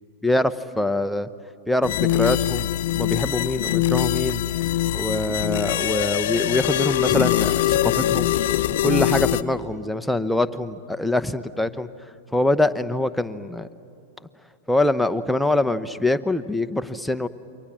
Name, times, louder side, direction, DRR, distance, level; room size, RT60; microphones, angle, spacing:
voice 1, 0.2-1.3 1.7-2.7 3.0-4.4 4.9-8.3 8.8-11.9 12.3-13.7 14.7-17.3, left 1 dB, ahead, 10 dB, 0.9 m, -24 dB
sound 1, 1.8-9.4, left 13 dB, 60° left, 0.7 m, -22 dB
28.5 x 24.0 x 7.5 m, 2.7 s
hypercardioid pair, 100°, 0 cm